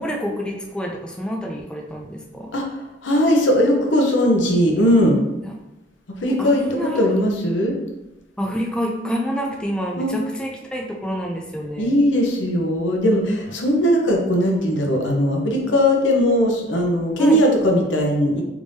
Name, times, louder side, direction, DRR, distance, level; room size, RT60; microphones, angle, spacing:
voice 1, 0.0-2.5 6.3-7.1 8.4-11.9 17.2-17.4, equal, 5° left, 0 dB, 0.3 m, -27 dB
voice 2, 2.5-5.2 6.2-7.8 10.0-10.1 11.8-18.4, equal, 90° left, 1 dB, 0.7 m, -19 dB
3.5 x 3.3 x 2.6 m, 0.98 s
head